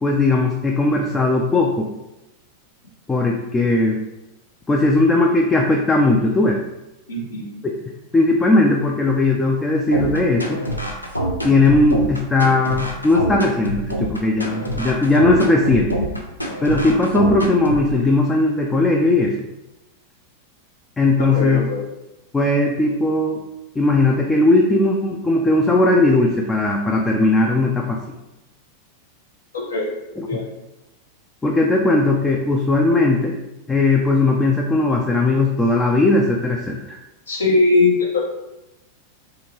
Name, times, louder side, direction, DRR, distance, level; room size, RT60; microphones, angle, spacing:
voice 1, 0.0-1.9 3.1-4.0 4.7-6.6 7.6-7.7 8.1-10.6 11.4-15.9 16.6-19.4 21.0-21.6 22.3-23.4 23.8-28.0 31.4-33.4 33.7-37.0, left 2 dB, 15° left, 0 dB, 0.3 m, -18 dB
voice 2, 7.1-7.6 21.2-21.9 29.5-29.9 30.3-30.5 37.3-38.2, left 3 dB, 70° left, -2 dB, 0.8 m, -20 dB
sound 1, 9.9-17.9, equal, 90° left, 0.4 m, -25 dB
2.9 x 2.6 x 2.9 m, 0.96 s
figure-of-eight pair, 90°, 0 cm